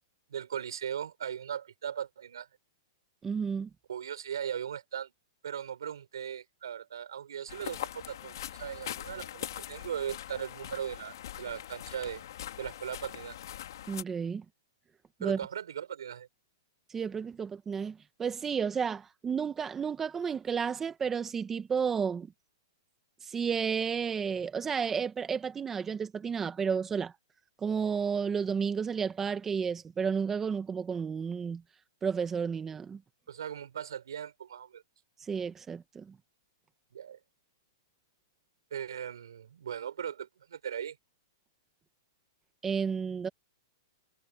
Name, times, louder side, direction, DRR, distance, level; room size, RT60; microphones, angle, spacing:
voice 1, 0.3-2.5 3.9-5.1 5.4-12.2 12.6-13.4 15.2-16.3 33.3-34.8 36.9-37.2 38.7-41.0, right 9 dB, 85° right, 4.9 m, -38 dB
voice 2, 3.2-3.7 13.9-14.4 15.2-15.4 16.9-22.3 23.2-27.1 27.6-31.6 32.0-33.0 35.3-36.1 42.6-43.3, right 6 dB, 15° right, 1.4 m, -32 dB
sound 1, 7.5-14.0, left 12 dB, 65° left, 2.5 m, -42 dB
hypercardioid pair, 155°, 2 cm